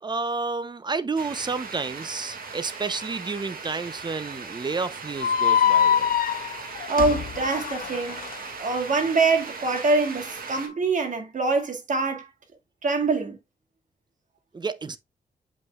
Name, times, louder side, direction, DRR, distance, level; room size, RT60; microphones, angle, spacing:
voice 1, 0.0-6.1 14.5-15.0, right 4 dB, 30° right, 0.7 m, -30 dB
sound 1, 1.2-10.7, right 4 dB, 75° right, 2.0 m, -38 dB
sound 2, 5.2-8.4, left 8 dB, 70° left, 0.5 m, -24 dB
voice 2, 6.9-8.2 8.6-12.3 12.8-13.4, right 3 dB, 55° right, 1.9 m, -24 dB
7.6 x 5.5 x 2.3 m
wide cardioid pair, 110°, 15 cm